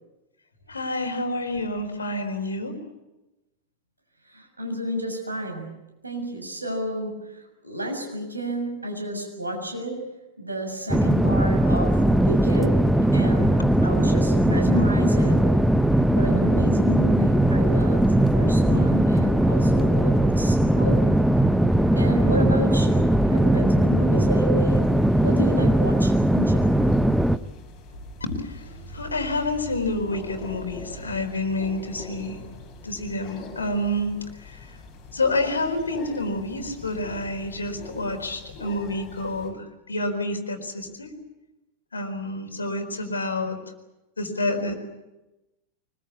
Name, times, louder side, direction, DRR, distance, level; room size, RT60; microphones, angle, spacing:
voice 1, 0.7-2.8 13.6-13.7 28.2-32.4 32.8-34.8 35.1-41.1 41.9-43.6 44.2-44.7, left 2 dB, 75° left, 5 dB, 4.2 m, -28 dB
voice 2, 4.3-10.1 10.4-12.9 13.1-15.5 16.1-21.1 22.0-25.0 25.2-27.1, right 1 dB, 80° right, 3 dB, 6.9 m, -31 dB
sound 1, 10.9-27.4, right 1 dB, ahead, 0.8 m, -19 dB
sound 2, 24.7-39.5, left 1 dB, 35° left, 7.4 m, -43 dB
24.5 x 21.5 x 8.5 m, 1.0 s
figure-of-eight pair, 90°, 0 cm